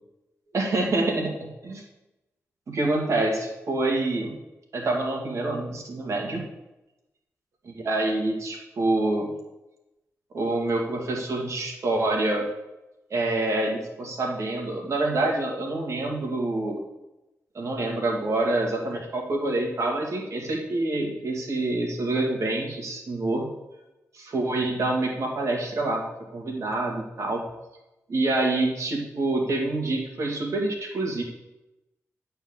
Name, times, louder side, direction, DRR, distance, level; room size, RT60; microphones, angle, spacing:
voice 1, 0.5-1.8 2.7-4.4 4.7-6.4 7.7-9.3 10.3-12.4 13.1-16.8 17.5-23.5 24.1-26.0 26.3-27.4 28.1-31.2, right 2 dB, 60° right, 0 dB, 2.3 m, -26 dB
9.0 x 4.6 x 7.4 m, 0.97 s
wide cardioid pair, 95°, 6 cm